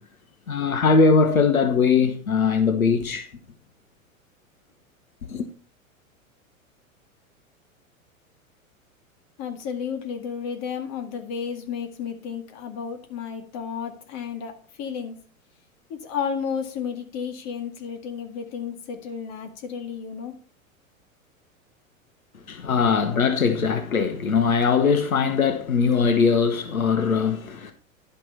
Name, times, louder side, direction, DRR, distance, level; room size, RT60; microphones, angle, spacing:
voice 1, 0.5-3.3 5.3-5.5 22.5-27.7, left 5 dB, 80° left, 1.3 m, -21 dB
voice 2, 9.4-15.2 15.9-20.3, left 7 dB, 40° left, 2.0 m, -32 dB
11.5 x 6.0 x 4.3 m
figure-of-eight pair, 95°, 41 cm